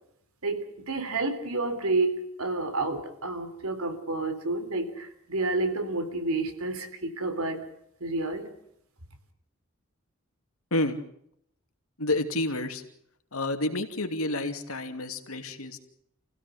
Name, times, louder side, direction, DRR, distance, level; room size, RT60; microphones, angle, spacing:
voice 1, 0.4-7.7 8.0-8.5, right 2 dB, 90° right, 9 dB, 3.5 m, -30 dB
voice 2, 12.0-12.8 13.3-15.8, left 2 dB, 80° left, 6 dB, 2.7 m, -29 dB
28.5 x 16.5 x 8.0 m, 0.72 s
head